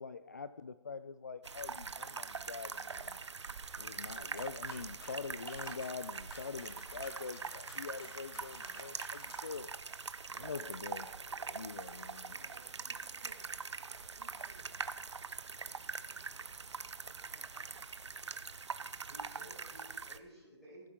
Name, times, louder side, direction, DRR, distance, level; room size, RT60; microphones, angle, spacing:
voice 1, 0.0-3.2 3.8-9.7 10.3-11.1 11.4-12.3, left 5 dB, 35° left, 13 dB, 0.4 m, -44 dB
sound 1, 1.4-20.2, right 5 dB, 70° right, 0.9 m, -43 dB
sound 2, 4.4-9.7, left 1 dB, 55° left, 4.7 m, -55 dB
voice 2, 10.4-12.5 19.1-20.9, right 1 dB, ahead, -10 dB, 4.7 m, -57 dB
voice 3, 12.3-13.4 13.8-14.8 15.2-16.3 16.7-17.8, right 4 dB, 45° right, 0 dB, 2.8 m, -64 dB
15.0 x 11.5 x 3.7 m, 1.1 s
hypercardioid pair, 175°, 15 cm